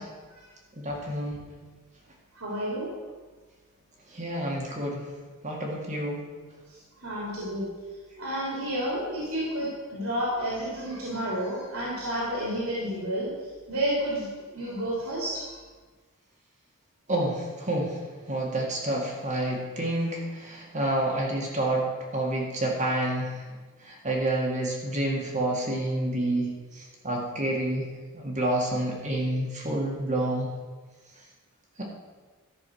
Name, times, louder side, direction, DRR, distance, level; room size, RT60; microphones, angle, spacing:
voice 1, 0.8-1.5 4.1-5.1 5.4-6.3 17.1-18.0 18.3-21.9 22.1-23.4 23.8-27.9 28.1-30.5 31.8-31.9, right 1 dB, 35° right, -2 dB, 2.0 m, -29 dB
voice 2, 2.3-2.9 6.7-7.7 8.2-13.3 13.7-15.6, equal, 70° right, -6 dB, 3.2 m, -31 dB
13.5 x 6.2 x 6.3 m, 1.4 s
head